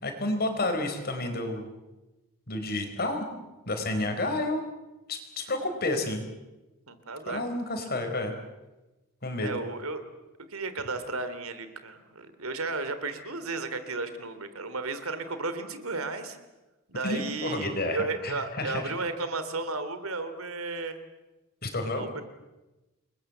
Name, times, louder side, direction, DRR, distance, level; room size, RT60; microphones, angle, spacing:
voice 1, 0.0-1.7 2.5-3.2 3.7-4.6 5.1-6.2 7.3-8.3 9.2-9.5 17.0-18.9 21.6-22.1, left 2 dB, 45° left, 5 dB, 4.4 m, -30 dB
voice 2, 6.9-7.4 9.4-10.0 10.5-16.4 16.9-21.0 21.9-22.2, right 3 dB, 75° right, 11 dB, 3.0 m, -34 dB
29.0 x 21.5 x 7.9 m, 1.1 s
head